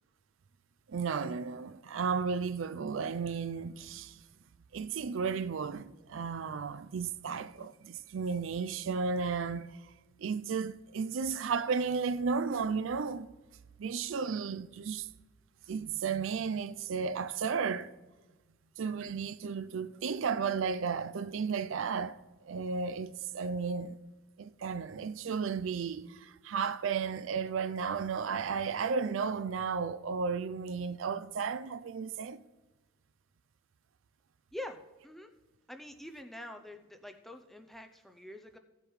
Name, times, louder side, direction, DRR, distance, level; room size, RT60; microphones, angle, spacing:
voice 1, 0.9-4.2 4.7-9.8 10.2-13.3 13.8-15.1 15.7-17.9 18.8-24.0 24.4-32.5, right 5 dB, 75° right, 0.4 m, -34 dB
voice 2, 35.7-38.6, left 1 dB, ahead, 0.5 m, -45 dB
16.0 x 7.7 x 3.2 m
head